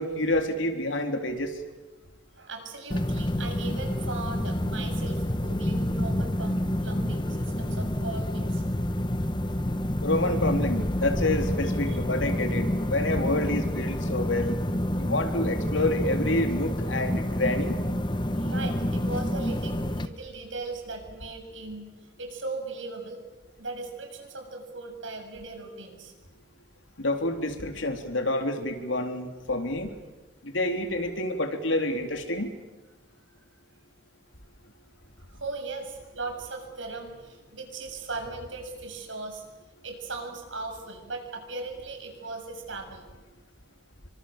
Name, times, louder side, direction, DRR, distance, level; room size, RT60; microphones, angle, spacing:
voice 1, 0.0-1.5 10.0-14.6 15.0-17.8 27.0-29.9 30.4-32.5, left 1 dB, 85° left, 5 dB, 3.6 m, -28 dB
voice 2, 2.3-8.6 11.9-12.0 18.4-21.9 22.2-23.2 23.6-26.1 35.2-39.4 39.8-43.0, right 3 dB, 85° right, 4 dB, 7.1 m, -38 dB
sound 1, 2.9-20.1, left 1 dB, 25° left, 1.1 m, -28 dB
29.0 x 24.5 x 7.4 m, 1.2 s
head